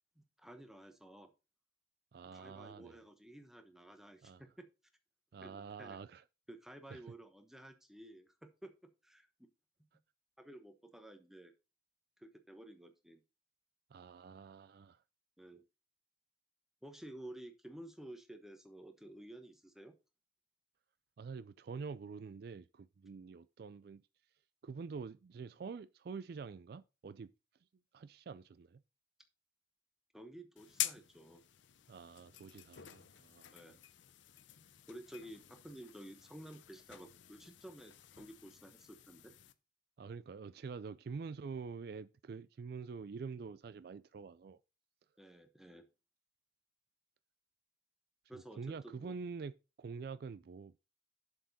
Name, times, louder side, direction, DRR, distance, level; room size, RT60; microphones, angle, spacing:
voice 1, 0.2-1.3 2.3-4.7 5.4-6.0 6.5-9.3 10.4-11.5 12.2-13.2 15.4-15.6 16.8-19.9 30.1-31.4 33.5-33.8 34.9-39.3 45.2-45.9 48.3-49.1, right 1 dB, ahead, 1.0 m, -53 dB
voice 2, 2.1-3.0 4.2-4.4 5.3-6.2 6.9-7.0 13.9-15.0 21.2-24.0 24.6-27.3 27.9-28.8 31.9-33.8 40.0-44.6 48.3-49.5 49.8-50.8, right 5 dB, 55° right, 0.3 m, -46 dB
sound 1, 30.6-39.5, left 13 dB, 75° left, 0.7 m, -47 dB
7.4 x 7.1 x 4.1 m
head